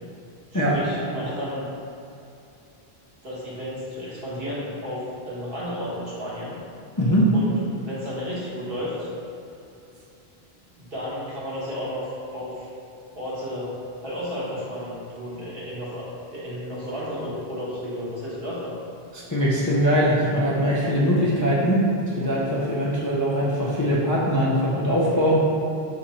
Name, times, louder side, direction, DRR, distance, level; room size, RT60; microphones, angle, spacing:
voice 1, 0.5-1.6 3.2-6.6 7.3-9.1 10.8-12.7 13.1-13.7 14.0-16.1 16.3-18.7, equal, 65° right, -8 dB, 1.4 m, -32 dB
voice 2, 7.0-7.3 19.1-25.4, equal, 30° left, -7 dB, 0.4 m, -21 dB
3.8 x 3.2 x 4.2 m, 2.7 s
omnidirectional pair, 1.1 m